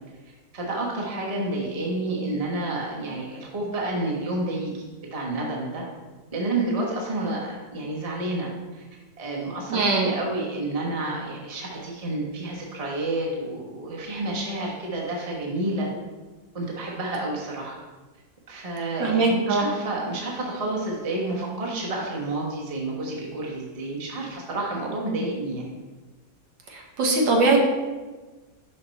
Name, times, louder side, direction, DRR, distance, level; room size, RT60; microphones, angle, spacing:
voice 1, 0.5-4.7 5.1-5.8 6.3-8.8 9.2-15.9 16.5-17.8 18.5-25.7, right 2 dB, 25° right, -2 dB, 1.0 m, -29 dB
voice 2, 9.7-10.2 19.0-19.6 26.7-27.6, right 3 dB, 75° right, 0 dB, 1.8 m, -21 dB
5.8 x 5.5 x 4.1 m, 1.3 s
omnidirectional pair, 2.0 m